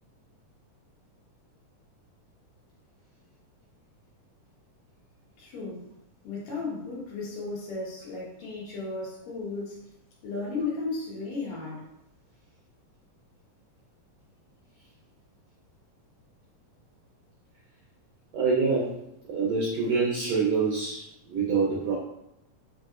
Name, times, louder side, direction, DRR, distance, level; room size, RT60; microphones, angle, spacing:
voice 1, 5.4-5.9 6.2-9.8 10.2-11.9, left 3 dB, 75° left, -4 dB, 2.7 m, -34 dB
voice 2, 18.3-19.0 19.3-21.9, right 4 dB, 75° right, -6 dB, 1.5 m, -26 dB
5.8 x 2.7 x 2.4 m, 0.81 s
omnidirectional pair, 3.8 m